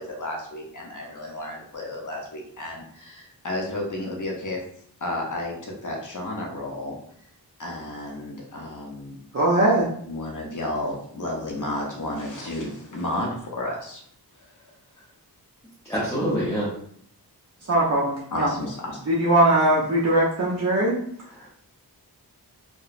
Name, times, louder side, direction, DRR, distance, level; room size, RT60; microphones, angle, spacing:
voice 1, 0.0-4.6 5.0-7.0 7.6-9.1 10.1-13.3 13.6-14.0 18.3-19.0, left 1 dB, 50° left, -1 dB, 0.6 m, -32 dB
voice 2, 9.3-9.9 17.7-18.5 19.1-21.0, right 1 dB, 40° right, -5 dB, 0.5 m, -20 dB
voice 3, 15.9-16.7 21.2-21.6, equal, 5° left, -8 dB, 0.6 m, -27 dB
2.8 x 2.1 x 2.4 m, 0.63 s
wide cardioid pair, 105°, 40 cm